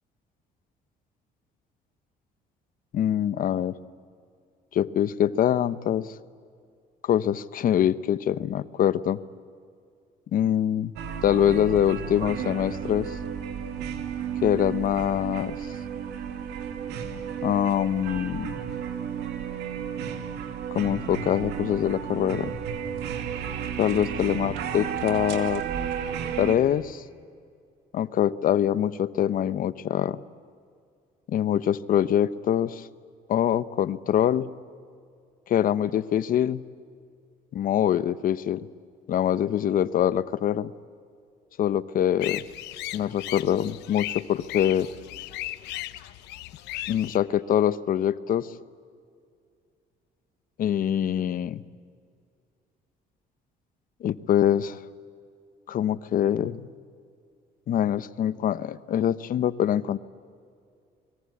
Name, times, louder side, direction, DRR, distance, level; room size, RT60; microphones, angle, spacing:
voice 1, 2.9-3.8 4.7-6.1 7.0-9.2 10.3-10.9 11.2-13.2 14.4-15.6 17.4-18.6 20.7-22.6 23.8-25.6 26.4-27.0 27.9-30.2 31.3-32.9 33.3-34.5 35.5-36.6 37.5-38.7 39.1-40.7 41.6-42.4 42.9-44.9 46.9-48.5 50.6-51.6 54.0-54.8 55.7-56.6 57.7-60.0, left 10 dB, 55° left, 15 dB, 0.9 m, -24 dB
sound 1, 11.0-26.6, right 8 dB, 85° right, 2.4 m, -33 dB
sound 2, 42.2-47.2, left 16 dB, 85° left, 0.9 m, -36 dB
29.5 x 22.5 x 8.5 m, 2.3 s
cardioid pair, 110°, 17 cm